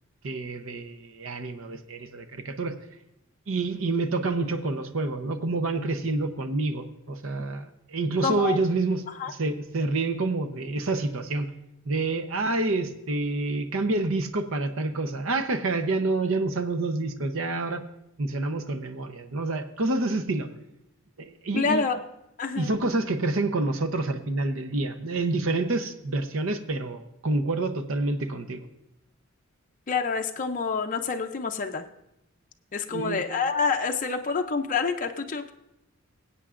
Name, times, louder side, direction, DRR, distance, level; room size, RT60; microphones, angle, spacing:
voice 1, 0.2-2.7 3.5-9.0 9.3-11.5 11.9-17.8 18.2-20.5 21.2-21.9 22.6-28.6 32.9-33.2, right 2 dB, 85° right, 8 dB, 0.8 m, -28 dB
voice 2, 8.2-8.6 9.2-9.3 21.5-22.0 22.4-22.7 29.9-31.8 32.7-35.5, left 5 dB, 40° left, 3 dB, 0.5 m, -27 dB
21.5 x 8.3 x 2.5 m, 0.87 s
head